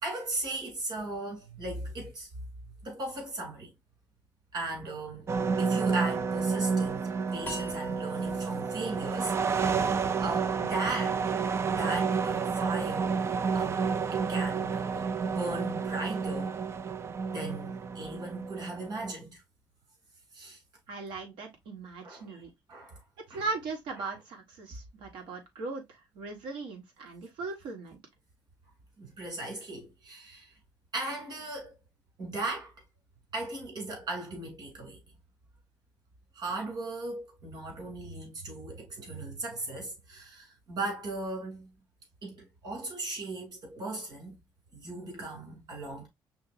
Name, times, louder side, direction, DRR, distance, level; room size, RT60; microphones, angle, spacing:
voice 1, 0.0-2.3 2.8-3.7 4.5-5.3 5.6-9.6 10.2-11.4 11.7-13.2 13.5-16.6 17.3-19.4 20.3-20.6 22.0-22.4 22.7-23.0 23.3-23.4 29.0-30.5 30.9-31.7 32.2-32.7 33.3-35.0 36.3-41.7 42.2-44.3 44.7-46.1, right 2 dB, 60° right, 3.1 m, -37 dB
sound 1, 5.3-19.1, right 5 dB, 35° right, 0.3 m, -30 dB
sound 2, 7.5-10.6, left 1 dB, 25° left, 0.6 m, -46 dB
voice 2, 20.9-22.5 23.3-28.0, right 3 dB, 85° right, 1.5 m, -38 dB
5.6 x 3.2 x 2.6 m
cardioid pair, 110°, 8 cm